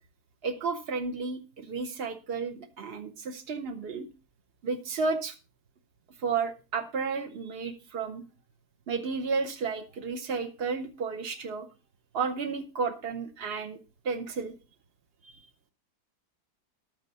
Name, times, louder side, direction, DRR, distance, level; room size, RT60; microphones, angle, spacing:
voice 1, 0.4-4.1 4.6-5.3 6.2-8.2 8.9-11.7 12.1-13.8 14.0-14.6 15.2-15.4, right 4 dB, 50° right, 6 dB, 0.7 m, -32 dB
12.5 x 9.0 x 4.0 m, 0.34 s
omnidirectional pair, 1.8 m